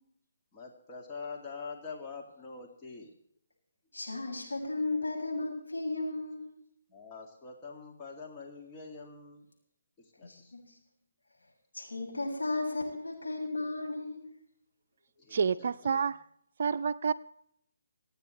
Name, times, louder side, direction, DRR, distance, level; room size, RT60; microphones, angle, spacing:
voice 1, 0.5-3.1 6.9-9.5 10.2-10.5 15.2-15.7, left 4 dB, 25° left, 0 dB, 2.2 m, -45 dB
voice 2, 3.9-6.6 10.2-10.6 11.7-14.3, left 2 dB, 80° left, -1 dB, 6.4 m, -35 dB
voice 3, 15.3-16.2 16.6-17.1, right 6 dB, 55° right, 12 dB, 0.5 m, -29 dB
27.0 x 9.3 x 3.2 m, 0.70 s
figure-of-eight pair, 140°, 0 cm